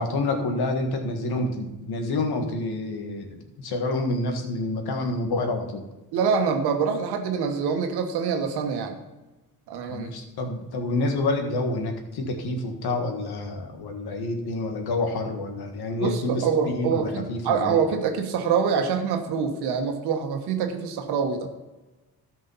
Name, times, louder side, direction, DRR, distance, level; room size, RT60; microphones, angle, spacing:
voice 1, 0.0-5.8 9.9-17.8, left 2 dB, 75° left, 4 dB, 1.8 m, -28 dB
voice 2, 6.1-9.0 9.7-10.1 16.0-21.5, right 6 dB, 90° right, 5 dB, 1.4 m, -25 dB
12.5 x 5.4 x 5.6 m, 1.1 s
cardioid pair, 80°, 38 cm